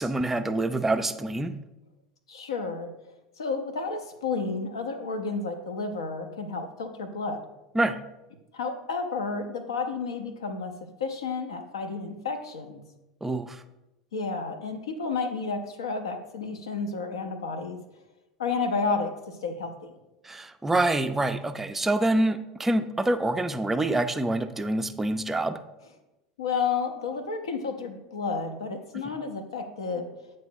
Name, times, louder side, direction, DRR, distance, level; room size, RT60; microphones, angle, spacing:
voice 1, 0.0-1.6 7.7-8.0 13.2-13.6 20.2-25.6 29.0-29.2, right 2 dB, 10° right, 9 dB, 0.4 m, -26 dB
voice 2, 2.3-2.9 3.4-7.4 8.5-10.7 11.0-12.8 14.1-17.8 18.4-19.9 26.4-30.1, left 4 dB, 75° left, 6 dB, 0.6 m, -31 dB
8.3 x 3.1 x 4.4 m, 0.98 s
figure-of-eight pair, 75°, 3 cm